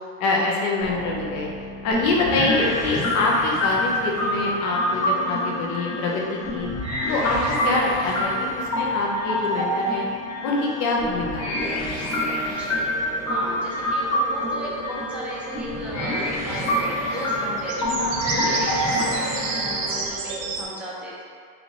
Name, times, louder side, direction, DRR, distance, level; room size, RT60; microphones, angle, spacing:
voice 1, 0.2-1.5 1.8-6.7 7.1-10.0 10.4-11.7, left 2 dB, 60° left, -2 dB, 0.9 m, -25 dB
sound 1, 0.8-13.1, left 4 dB, 80° left, 1.4 m, -42 dB
sound 2, 1.9-20.1, left 1 dB, 45° left, 1.5 m, -26 dB
voice 2, 12.4-12.8 13.2-21.2, equal, 5° right, -8 dB, 0.9 m, -36 dB
sound 3, 12.6-20.6, right 4 dB, 65° right, 0.6 m, -33 dB
4.2 x 2.7 x 3.0 m, 2.2 s
supercardioid pair, 120°, 32 cm